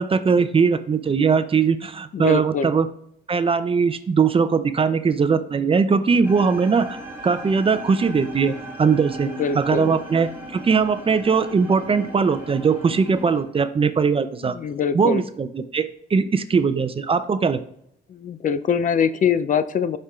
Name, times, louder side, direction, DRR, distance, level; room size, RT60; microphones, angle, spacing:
voice 1, 0.0-2.9 3.3-7.0 7.2-9.3 9.5-14.5 14.9-17.6, right 5 dB, 30° right, 12 dB, 0.4 m, -20 dB
voice 2, 2.1-2.7 9.3-10.0 14.4-15.2 18.1-20.0, left 7 dB, 40° left, 12 dB, 0.4 m, -23 dB
sound 1, 6.2-13.4, right 1 dB, 10° right, 1.9 m, -37 dB
11.5 x 4.4 x 2.3 m, 0.72 s
cardioid pair, 90°, 20 cm